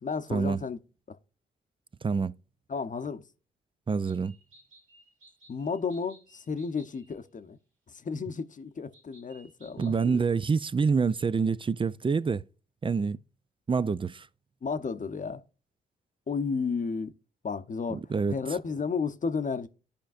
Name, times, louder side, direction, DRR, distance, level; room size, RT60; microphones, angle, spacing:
voice 1, 0.0-0.8 1.1-1.2 2.7-3.2 5.5-7.6 7.9-10.2 14.6-15.4 16.3-17.1 17.4-18.0 18.3-19.7, left 5 dB, 40° left, 0.8 m, -32 dB
voice 2, 3.9-4.3 9.8-12.4 12.8-13.2 13.7-14.3 17.9-18.3, right 5 dB, 25° right, 0.4 m, -26 dB
sound 1, 4.0-7.2 8.9-10.2, right 2 dB, 70° right, 2.4 m, -59 dB
14.5 x 5.1 x 2.5 m
hypercardioid pair, 45°, 21 cm